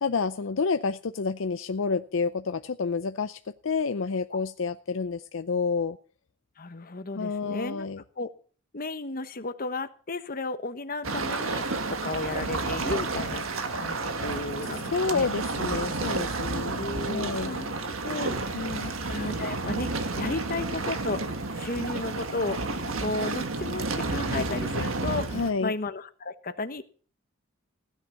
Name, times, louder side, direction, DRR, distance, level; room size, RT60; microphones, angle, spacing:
voice 1, 0.0-6.0 7.2-8.0 14.9-17.6 18.5-18.9 25.3-25.7, left 4 dB, 70° left, 10 dB, 0.6 m, -29 dB
voice 2, 6.6-7.9 8.2-8.3 8.7-13.4 13.7-15.3 16.6-26.8, left 3 dB, 45° left, 10 dB, 1.2 m, -34 dB
sound 1, 11.0-25.5, right 3 dB, 85° right, 1.6 m, -31 dB
16.0 x 10.0 x 5.7 m, 0.40 s
head